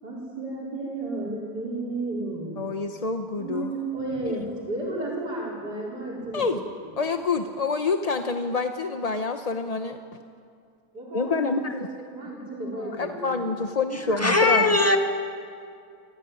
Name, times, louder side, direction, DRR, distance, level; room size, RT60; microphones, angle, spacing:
voice 1, 0.0-2.6 3.4-6.5 10.9-13.4, right 2 dB, 80° right, -5 dB, 5.1 m, -33 dB
voice 2, 2.6-3.7 4.3-4.4 6.3-6.6 7.0-10.0 11.1-11.8 12.7-14.8, left 4 dB, 35° left, 6 dB, 0.6 m, -27 dB
voice 3, 13.9-15.0, left 2 dB, 10° left, 4 dB, 1.8 m, -20 dB
27.0 x 16.5 x 9.7 m, 2.4 s
omnidirectional pair, 1.7 m